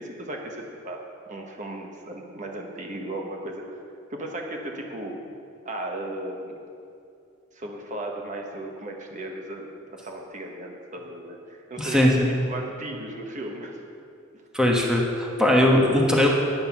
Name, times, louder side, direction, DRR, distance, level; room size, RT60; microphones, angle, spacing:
voice 1, 0.0-3.6 4.1-5.2 5.6-6.6 7.5-13.8, right 1 dB, 35° right, 1 dB, 1.1 m, -36 dB
voice 2, 11.8-12.1 14.5-16.3, left 1 dB, 5° right, -2 dB, 1.1 m, -20 dB
9.2 x 9.2 x 5.8 m, 2.5 s
head